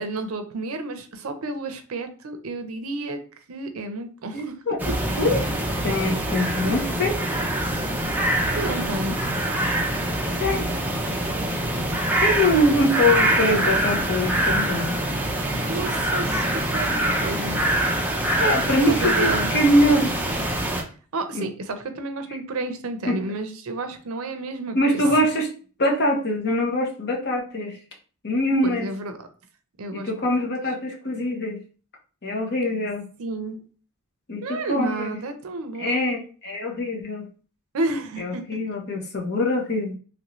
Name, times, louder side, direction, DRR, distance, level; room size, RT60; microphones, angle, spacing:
voice 1, 0.0-3.2 3.5-4.5 8.5-9.2 15.7-17.6 18.9-19.5 21.1-24.8 25.0-25.2 28.6-29.2 29.8-30.1 33.2-33.6 34.4-36.2 37.7-38.6, right 2 dB, 70° right, 7 dB, 0.5 m, -31 dB
voice 2, 4.3-4.8 5.2-5.5 5.8-7.2 10.4-10.7 12.2-15.0 18.4-20.2 21.3-21.5 23.1-23.2 24.7-25.5 25.8-27.8 28.2-28.9 29.9-31.6 32.2-33.0 34.3-35.2 35.8-37.3 38.2-40.0, left 1 dB, 50° left, 0 dB, 0.8 m, -23 dB
sound 1, 4.8-20.8, right 1 dB, 10° right, 0.5 m, -24 dB
3.1 x 2.6 x 3.0 m, 0.39 s
head